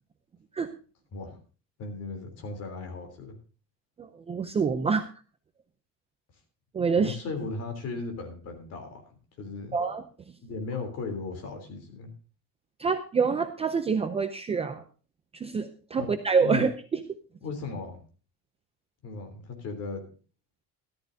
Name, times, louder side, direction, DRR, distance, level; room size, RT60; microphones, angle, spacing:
voice 1, 1.8-3.4 7.0-9.0 9.4-9.8 10.4-12.1 16.0-16.1 16.4-16.6 17.4-18.0 19.0-20.0, left 4 dB, 40° left, 5 dB, 3.4 m, -36 dB
voice 2, 4.0-5.1 6.7-7.2 9.7-10.4 12.8-14.8 15.3-17.0, right 5 dB, 15° right, 7 dB, 0.5 m, -27 dB
13.5 x 13.0 x 2.7 m, 0.36 s
cardioid pair, 175°, 37 cm